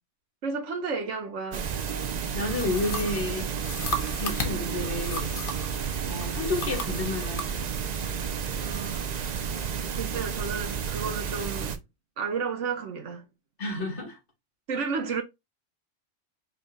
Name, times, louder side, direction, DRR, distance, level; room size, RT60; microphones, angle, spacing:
voice 1, 0.4-1.7 8.6-9.4 10.0-11.8 12.2-13.3 14.7-15.2, right 5 dB, 75° right, 1.2 m, -32 dB
sound 1, 1.5-11.8, right 7 dB, 55° right, 0.4 m, -31 dB
voice 2, 2.3-3.5 4.1-5.3 6.0-7.7 13.6-14.2, left 2 dB, 65° left, 2.6 m, -31 dB
sound 2, 2.5-5.8 6.2-7.5, left 2 dB, 50° left, 1.1 m, -35 dB
5.4 x 2.2 x 3.9 m
omnidirectional pair, 1.3 m